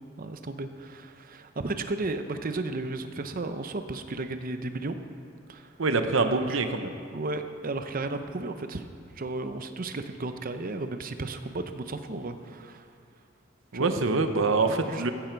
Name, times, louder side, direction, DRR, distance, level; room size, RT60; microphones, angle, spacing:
voice 1, 0.2-5.0 5.5-5.7 6.5-6.6 7.1-8.9 9.2-12.9 13.7-13.9 14.7-15.1, right 2 dB, 45° right, 8 dB, 0.7 m, -34 dB
voice 2, 5.8-6.9 13.7-15.1, right 3 dB, 75° right, 7 dB, 0.9 m, -25 dB
15.0 x 12.0 x 4.6 m, 2.3 s
head